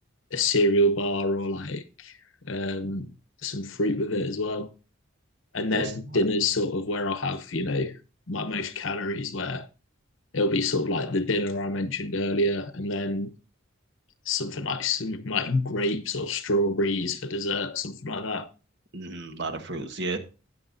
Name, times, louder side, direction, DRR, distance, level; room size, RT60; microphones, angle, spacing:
voice 1, 0.3-2.1 2.5-3.1 3.4-4.7 5.5-7.9 8.3-9.7 10.3-13.3 14.3-18.5, left 1 dB, 70° left, 0.9 m, -27 dB
voice 2, 5.7-6.2 18.9-20.2, right 3 dB, 60° right, 1.3 m, -34 dB
13.5 x 9.0 x 2.6 m
head